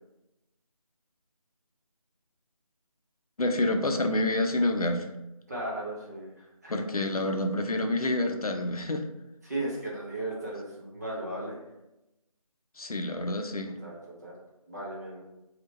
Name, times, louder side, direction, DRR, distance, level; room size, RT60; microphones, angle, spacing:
voice 1, 3.4-5.1 6.7-9.0 12.8-13.8, left 1 dB, 75° left, 4 dB, 0.5 m, -28 dB
voice 2, 5.5-6.8 9.4-11.6 13.8-13.9 14.2-14.3 14.7-15.2, right 1 dB, 30° right, -5 dB, 0.8 m, -36 dB
3.3 x 2.8 x 3.8 m, 0.96 s
figure-of-eight pair, 165°, 19 cm